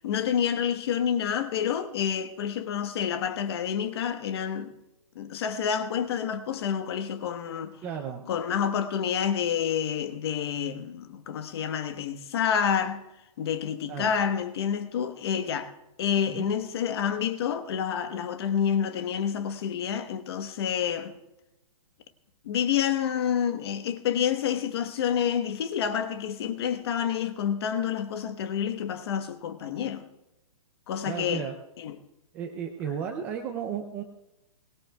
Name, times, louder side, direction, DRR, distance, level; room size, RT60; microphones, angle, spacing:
voice 1, 0.0-4.7 5.1-7.7 8.3-13.0 13.4-15.7 16.0-21.2 22.4-30.1 30.9-31.5 31.8-32.0, left 8 dB, 40° left, 1.1 m, -28 dB
voice 2, 7.8-8.2 13.9-14.1 16.3-16.5 31.0-31.5 32.3-34.0, right 8 dB, 10° right, 0.4 m, -34 dB
22.5 x 19.5 x 2.3 m
hypercardioid pair, 170°, 19 cm